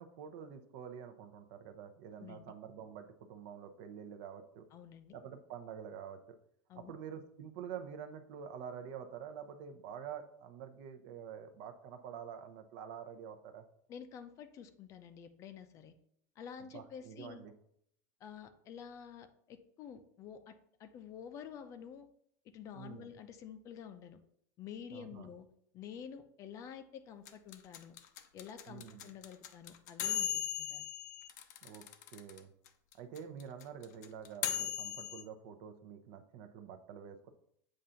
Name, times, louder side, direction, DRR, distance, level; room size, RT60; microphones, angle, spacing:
voice 1, 0.0-4.6 5.1-6.4 6.8-13.6 16.6-17.5 22.7-23.1 24.9-25.3 28.7-29.1 31.6-31.9 32.1-32.5 33.0-37.3, right 8 dB, 60° right, 8 dB, 0.7 m, -47 dB
voice 2, 2.2-2.5 4.7-5.2 6.7-6.9 13.9-15.9 16.4-17.5 18.2-22.1 22.5-24.2 24.6-25.5 25.7-28.0 28.3-30.8, left 8 dB, 35° left, 10 dB, 0.5 m, -49 dB
sound 1, 27.3-32.4 32.7-32.8 32.9-35.2, left 11 dB, 75° left, 0.6 m, -37 dB
7.5 x 2.6 x 5.6 m, 0.71 s
supercardioid pair, 155°, 9 cm